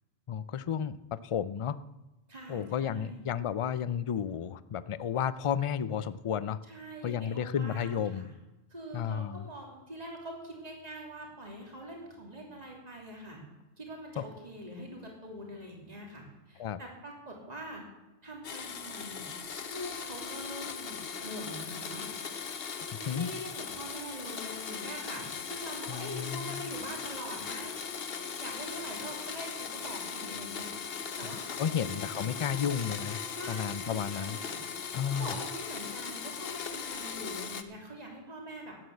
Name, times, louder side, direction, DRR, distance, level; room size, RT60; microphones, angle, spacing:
voice 1, 0.3-1.8 2.5-6.6 7.0-8.2 8.9-9.5 14.2-14.3 16.6-16.8 22.9-23.3 25.9-26.6 31.6-33.2 33.5-34.4 34.9-35.3, left 8 dB, 45° left, 15 dB, 0.4 m, -32 dB
voice 2, 2.3-3.2 6.7-8.3 8.7-13.4 13.8-17.8 18.2-19.3 19.7-22.1 23.0-27.8 28.4-32.7 33.3-34.6 34.8-38.7, equal, 35° right, 0 dB, 3.1 m, -44 dB
Domestic sounds home sounds, 18.4-37.6, left 6 dB, 60° left, 1.1 m, -39 dB
13.0 x 9.6 x 7.8 m, 1.0 s
omnidirectional pair, 1.1 m